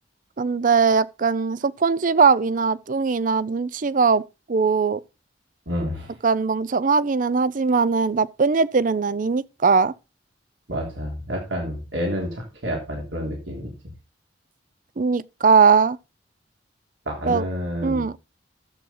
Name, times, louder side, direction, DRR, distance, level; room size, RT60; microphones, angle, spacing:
voice 1, 0.4-5.0 6.2-9.9 15.0-16.0 17.3-17.5 17.8-18.1, right 5 dB, 45° right, 0.5 m, -20 dB
voice 2, 5.7-6.1 10.7-13.7 17.1-18.0, equal, 85° right, 3.4 m, -29 dB
13.0 x 7.7 x 3.8 m
head